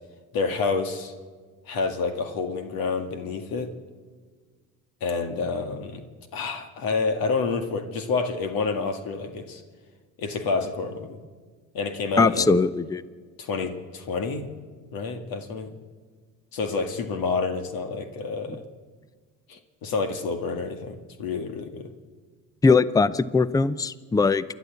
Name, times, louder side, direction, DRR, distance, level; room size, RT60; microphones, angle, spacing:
voice 1, 0.3-1.1 1.7-3.7 5.0-6.0 6.3-9.6 10.2-11.2 11.7-12.6 13.4-14.6 14.9-15.7 16.5-18.6 19.5-21.9, left 4 dB, 60° left, 7 dB, 2.1 m, -28 dB
voice 2, 12.2-13.0 22.6-24.4, left 4 dB, 10° left, 17 dB, 0.6 m, -20 dB
28.0 x 11.5 x 8.3 m, 1.5 s
supercardioid pair, 85°, 40 cm